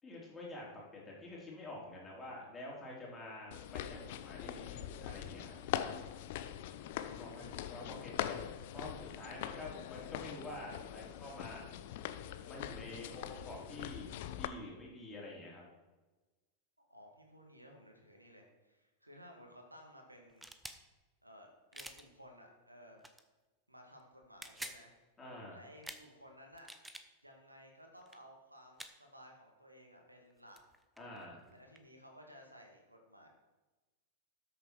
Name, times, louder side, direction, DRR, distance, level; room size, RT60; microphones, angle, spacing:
voice 1, 0.0-5.6 7.1-8.5 8.7-11.6 12.4-14.1 14.4-15.6 25.2-25.6 31.0-31.5, left 1 dB, 15° left, -4 dB, 3.8 m, -48 dB
sound 1, 3.5-14.5, left 11 dB, 50° left, 0.6 m, -42 dB
voice 2, 7.0-7.6 16.9-20.5 21.2-23.1 23.7-25.0 25.5-26.7 27.2-30.6 31.5-33.3, equal, 85° right, 2 dB, 1.9 m, -57 dB
sound 2, 20.3-20.8 21.7-22.0 23.0-23.2 24.2-24.8 25.8-26.0 26.5-27.1 28.0-28.2 28.8-28.9 30.3-30.4 30.6-31.9, right 1 dB, 5° right, 0.8 m, -48 dB
13.0 x 6.9 x 4.6 m, 1.2 s
figure-of-eight pair, 90°, 0 cm